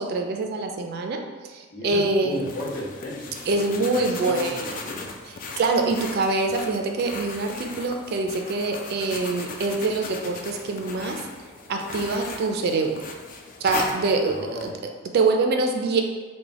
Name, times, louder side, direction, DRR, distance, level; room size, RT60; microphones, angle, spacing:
voice 1, 0.0-2.4 3.5-4.8 5.2-11.2 11.7-13.0 13.6-14.7 15.1-16.0, right 3 dB, 50° right, 3 dB, 0.3 m, -25 dB
voice 2, 1.7-3.5 3.9-5.1 14.2-14.7, equal, 60° left, -8 dB, 1.1 m, -34 dB
sound 1, 2.3-14.7, left 3 dB, 40° left, 0.3 m, -37 dB
3.3 x 2.1 x 3.5 m, 1.4 s
head